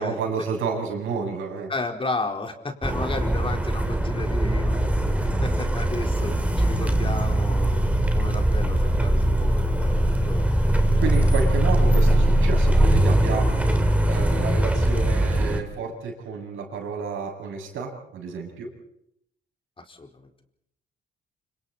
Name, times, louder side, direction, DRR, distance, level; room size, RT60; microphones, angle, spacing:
voice 1, 0.0-1.7 6.0-6.4 11.0-13.5 14.1-18.7, right 5 dB, 80° right, 1 dB, 7.3 m, -30 dB
voice 2, 1.7-4.8 5.4-7.8 8.1-10.6 11.0-11.3 19.8-20.4, left 3 dB, 25° left, 3 dB, 4.3 m, -33 dB
sound 1, 2.8-15.6, right 1 dB, 5° right, 3.2 m, -21 dB
29.0 x 27.5 x 4.3 m, 0.74 s
cardioid pair, 90°, 20 cm